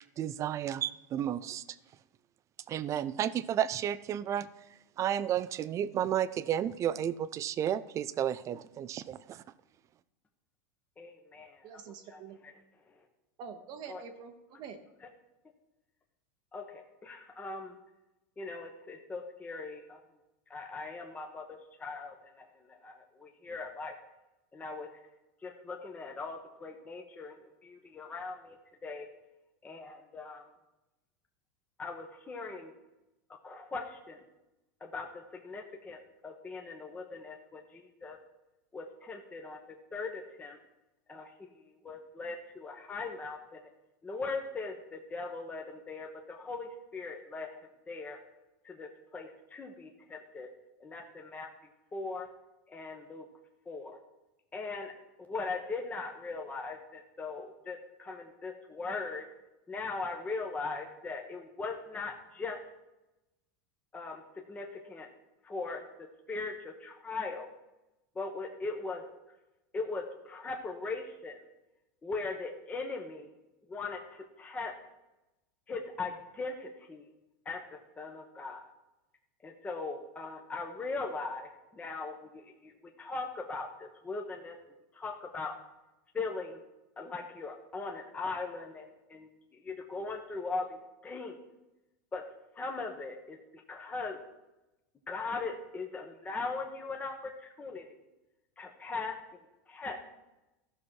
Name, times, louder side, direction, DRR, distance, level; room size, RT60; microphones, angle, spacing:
voice 1, 0.2-1.6 2.7-4.5 5.0-9.4, right 10 dB, 30° right, 0.4 m, -32 dB
voice 2, 11.0-12.5 13.9-14.0 16.5-17.8 18.4-20.0 20.5-23.9 24.5-25.0 25.4-27.4 27.6-28.6 28.8-29.1 29.6-30.4 31.8-32.7 33.4-34.2 34.8-38.2 38.7-39.6 39.9-40.6 41.1-43.6 44.0-47.5 47.9-48.2 48.6-50.5 50.8-51.5 51.9-52.3 52.7-53.3 53.7-54.0 54.5-54.9 55.2-59.3 59.7-62.6 63.9-64.2 64.5-65.1 65.4-67.5 68.1-69.0 69.7-71.4 72.0-73.3 73.7-74.8 75.7-77.0 77.4-78.7 79.4-84.6 84.9-85.6 86.1-86.6 87.0-91.4 92.1-92.2 92.5-94.2 95.1-97.8 98.6-100.0, left 3 dB, 15° left, 1.1 m, -40 dB
voice 3, 11.6-12.4 13.4-14.8, right 6 dB, 45° right, 0.9 m, -46 dB
14.5 x 6.1 x 4.5 m
supercardioid pair, 130°, 10 cm